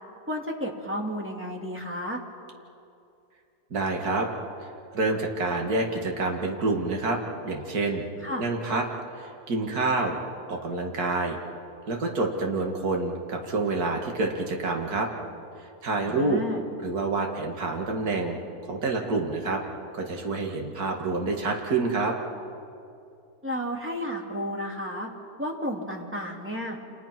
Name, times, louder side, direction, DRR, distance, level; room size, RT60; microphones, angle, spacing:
voice 1, 0.3-2.2 8.2-8.4 16.0-16.6 23.4-25.1 25.4-26.8, equal, 5° right, 0 dB, 2.8 m, -32 dB
voice 2, 3.7-4.3 4.6-7.2 7.4-8.0 8.4-8.8 9.1-10.2 10.5-11.4 11.9-15.1 15.8-16.4 16.8-18.4 18.7-19.6 19.9-22.1, right 3 dB, 65° right, 1 dB, 2.6 m, -27 dB
29.0 x 28.5 x 6.0 m, 2.6 s
omnidirectional pair, 1.7 m